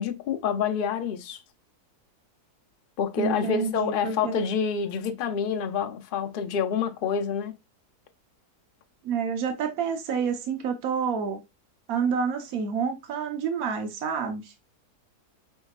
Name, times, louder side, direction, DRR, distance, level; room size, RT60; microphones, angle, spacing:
voice 1, 0.0-1.4 3.0-7.5, left 7 dB, 60° left, 0.5 m, -27 dB
voice 2, 3.2-4.4 9.0-11.4 11.9-14.5, right 6 dB, 65° right, 1.4 m, -28 dB
5.4 x 3.5 x 2.4 m
omnidirectional pair, 1.7 m